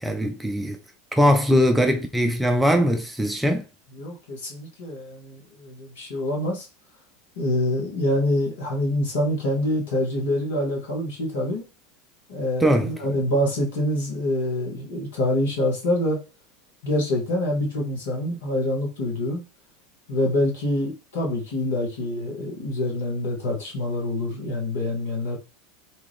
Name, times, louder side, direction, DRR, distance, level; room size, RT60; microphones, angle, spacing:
voice 1, 0.0-0.8 1.1-3.7 12.6-12.9, equal, 5° right, 0.4 m, -21 dB
voice 2, 3.9-6.7 7.4-11.6 12.3-16.2 16.8-19.4 20.1-25.4, left 1 dB, 65° left, 1.1 m, -26 dB
2.7 x 2.4 x 3.4 m
figure-of-eight pair, 80°, 0 cm